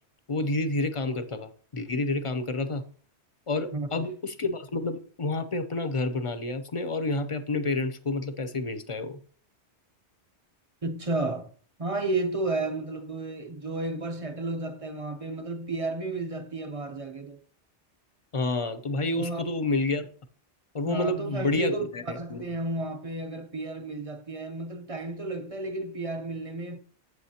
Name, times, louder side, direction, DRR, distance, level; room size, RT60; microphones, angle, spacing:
voice 1, 0.3-2.8 3.5-9.2 18.3-20.0 20.7-22.6, left 2 dB, 35° left, 0.7 m, -29 dB
voice 2, 3.7-4.1 10.8-11.5 11.8-17.4 19.1-19.4 20.8-26.8, right 2 dB, 30° right, 0.9 m, -32 dB
8.4 x 7.9 x 2.8 m
omnidirectional pair, 1.2 m